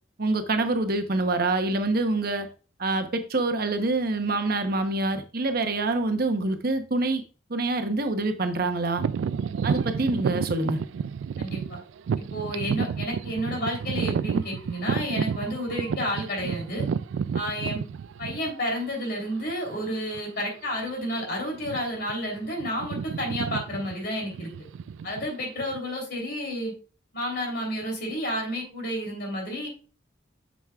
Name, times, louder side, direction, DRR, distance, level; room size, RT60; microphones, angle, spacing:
voice 1, 0.2-2.5 2.8-7.2 7.5-9.0 9.6-10.8, right 2 dB, 55° right, 0.9 m, -26 dB
sound 1, 9.0-18.7 19.4-19.5 20.1-20.4 20.7-20.9 21.5-22.1 22.4-25.8, right 6 dB, 85° right, 0.3 m, -30 dB
voice 2, 11.4-11.8 12.2-16.9 17.3-17.8 18.2-24.5 25.0-26.7 27.1-29.7, equal, 55° left, 3.3 m, -31 dB
9.2 x 6.2 x 2.3 m
head